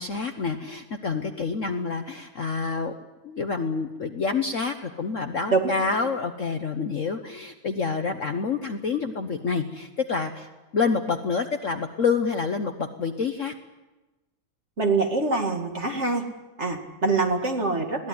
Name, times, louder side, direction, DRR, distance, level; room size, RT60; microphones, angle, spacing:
voice 1, 0.0-2.9 3.2-13.5, left 5 dB, 45° left, 6 dB, 1.2 m, -28 dB
voice 2, 14.8-16.2 16.6-18.1, right 3 dB, 35° right, 3 dB, 2.4 m, -24 dB
22.0 x 16.0 x 9.6 m, 1.1 s
omnidirectional pair, 2.2 m